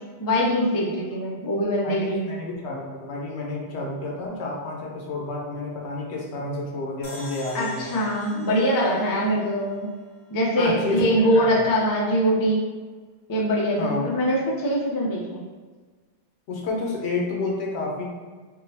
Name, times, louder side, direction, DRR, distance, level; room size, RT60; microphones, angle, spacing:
voice 1, 0.2-2.2 7.5-9.9 10.3-12.6 13.3-15.5, equal, 30° left, -4 dB, 0.4 m, -23 dB
voice 2, 1.8-8.0 10.6-11.7 13.8-14.1 16.5-18.0, left 2 dB, 80° left, -2 dB, 0.9 m, -30 dB
sound 1, 7.0-10.3, left 1 dB, 60° left, 1.0 m, -45 dB
3.6 x 2.0 x 2.7 m, 1.4 s
omnidirectional pair, 1.1 m